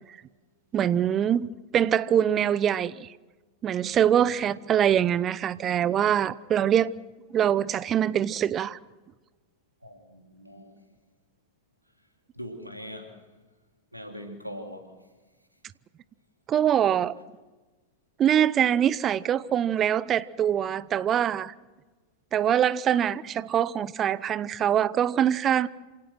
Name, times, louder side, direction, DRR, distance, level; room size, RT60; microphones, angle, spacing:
voice 1, 0.7-3.1 3.6-6.9 7.3-8.8 16.5-17.1 18.2-21.5 22.3-25.7, right 10 dB, 30° right, 0.6 m, -24 dB
voice 2, 9.8-10.8 12.3-13.2 13.9-15.0, equal, 90° right, 3.0 m, -41 dB
27.5 x 17.5 x 6.1 m
figure-of-eight pair, 90°, 0 cm